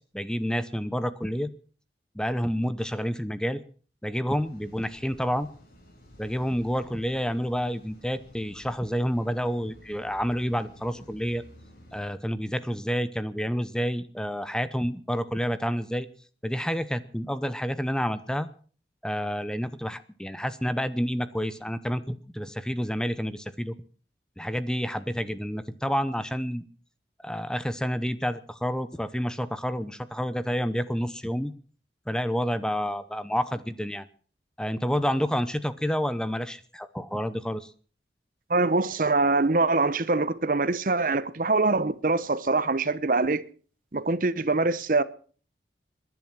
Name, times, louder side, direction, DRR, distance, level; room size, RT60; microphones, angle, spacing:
voice 1, 0.1-1.5 2.1-3.6 4.0-5.5 6.2-11.4 11.9-16.1 16.4-18.5 19.0-23.7 24.4-26.6 27.2-31.5 32.1-34.1 34.6-37.7, equal, 5° left, 0.7 m, -29 dB
sound 1, 4.3-12.1, equal, 55° left, 7.6 m, -53 dB
voice 2, 38.5-43.4 43.9-45.0, right 3 dB, 50° right, 0.8 m, -24 dB
21.0 x 11.0 x 6.0 m
head